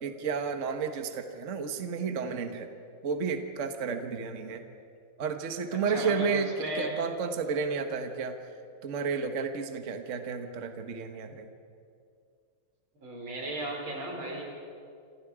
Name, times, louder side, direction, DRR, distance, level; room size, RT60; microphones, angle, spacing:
voice 1, 0.0-2.7 3.0-4.6 5.2-6.5 6.7-8.4 8.8-11.5, right 5 dB, 40° right, 6 dB, 1.4 m, -32 dB
voice 2, 5.7-6.9 13.0-14.4, right 1 dB, 85° right, -1 dB, 5.7 m, -35 dB
28.5 x 26.5 x 5.0 m, 2.3 s
omnidirectional pair, 2.3 m